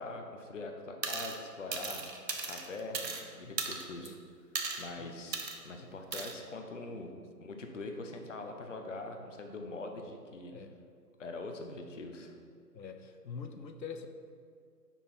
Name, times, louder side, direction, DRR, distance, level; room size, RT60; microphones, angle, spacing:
voice 1, 0.0-2.0 2.4-4.2 4.8-7.1 7.4-10.5 11.2-12.4, left 2 dB, 50° left, 4 dB, 0.6 m, -43 dB
sound 1, 1.0-1.4 1.7-3.2 3.6-4.1 4.5-4.9 5.3-5.6 6.1-6.3, right 4 dB, 85° right, 0.8 m, -36 dB
voice 2, 12.7-14.1, left 6 dB, 90° left, 7 dB, 0.7 m, -44 dB
5.6 x 4.3 x 4.3 m, 2.2 s
figure-of-eight pair, 150°, 49 cm